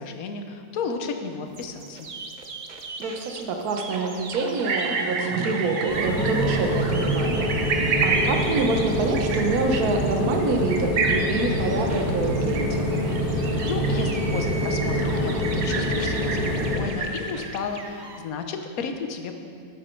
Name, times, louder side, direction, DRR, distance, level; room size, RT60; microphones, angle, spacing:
voice 1, 0.0-2.1 13.7-16.4 16.7-19.3, left 5 dB, 60° left, 6 dB, 1.2 m, -33 dB
sound 1, 1.5-18.2, right 3 dB, 45° right, 0.6 m, -39 dB
voice 2, 3.0-7.5 8.0-12.9, right 3 dB, 60° right, 3 dB, 1.4 m, -26 dB
sound 2, 4.6-17.3, right 4 dB, 85° right, 1.7 m, -31 dB
sound 3, 5.9-16.7, equal, 30° left, 2.1 m, -25 dB
12.5 x 9.2 x 4.5 m, 2.3 s
omnidirectional pair, 1.9 m